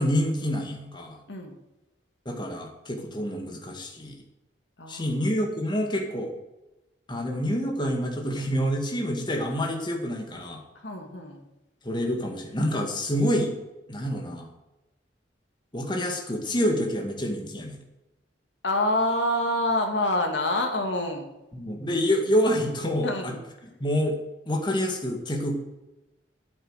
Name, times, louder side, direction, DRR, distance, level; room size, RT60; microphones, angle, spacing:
voice 1, 0.0-1.2 2.3-4.2 4.9-6.3 7.1-10.6 11.8-13.5 13.9-14.5 15.7-17.8 21.5-23.3 23.8-24.2 24.5-25.6, equal, 25° left, 2 dB, 2.1 m, -27 dB
voice 2, 4.8-5.1 10.8-11.4 18.6-21.3 23.0-23.4, left 1 dB, 80° left, 3 dB, 2.5 m, -26 dB
11.0 x 9.0 x 6.6 m, 0.98 s
head